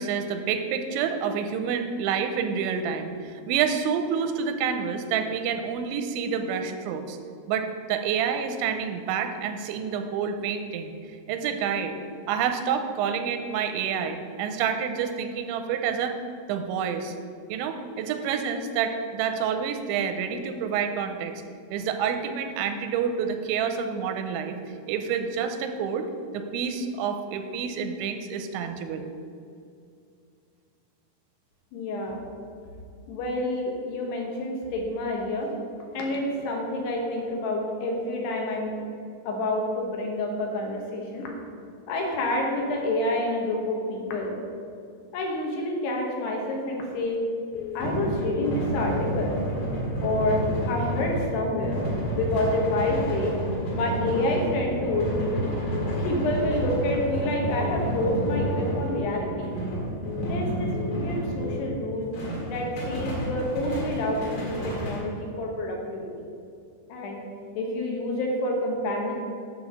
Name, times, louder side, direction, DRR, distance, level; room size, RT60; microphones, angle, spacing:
voice 1, 0.0-7.2 7.5-11.0 11.3-12.0 12.3-16.2 16.5-17.1 17.5-21.4 21.7-24.6 24.9-29.1, right 7 dB, 90° right, 7 dB, 3.0 m, -28 dB
voice 2, 31.7-32.2 33.1-35.5 35.9-38.8 39.3-41.3 41.9-44.4 45.1-47.2 47.7-49.4 50.0-51.8 52.2-53.4 53.7-55.5 56.0-59.5 60.3-62.1 62.5-66.1 66.9-67.2 67.6-69.1, left 1 dB, 70° left, 0 dB, 3.1 m, -28 dB
sound 1, 47.5-47.9 48.2-48.6 48.9-49.3 50.0-50.4 50.7-51.1 51.4-51.8 52.5-52.9 53.2-53.6 53.9-54.3 55.0-55.4 55.7-56.1 56.4-56.8 57.5-57.9 58.2-58.6 58.9-59.3 60.1-60.5 60.7-61.1 61.4-61.8, left 16 dB, 85° left, 2.3 m, -37 dB
sound 2, 47.5-61.8 62.1-65.0, right 1 dB, 40° left, 2.8 m, -30 dB
11.0 x 4.1 x 7.1 m, 2.4 s
omnidirectional pair, 5.2 m